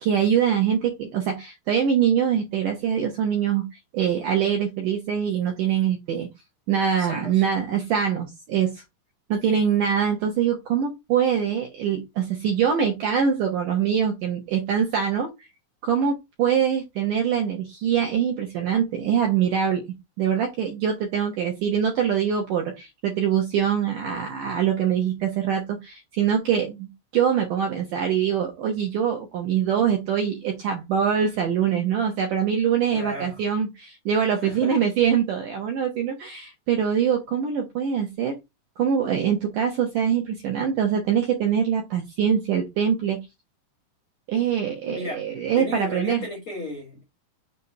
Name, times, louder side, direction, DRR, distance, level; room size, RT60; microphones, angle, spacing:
voice 1, 0.0-3.7 3.9-6.3 6.7-8.8 9.3-15.5 15.8-19.8 20.2-38.3 38.8-43.2 44.3-46.3, right 8 dB, 75° right, 1.9 m, -24 dB
voice 2, 7.0-7.5 32.9-33.4 34.3-34.8 44.9-45.2 45.6-47.0, left 2 dB, 75° left, 1.2 m, -34 dB
6.9 x 2.7 x 5.7 m
omnidirectional pair, 5.4 m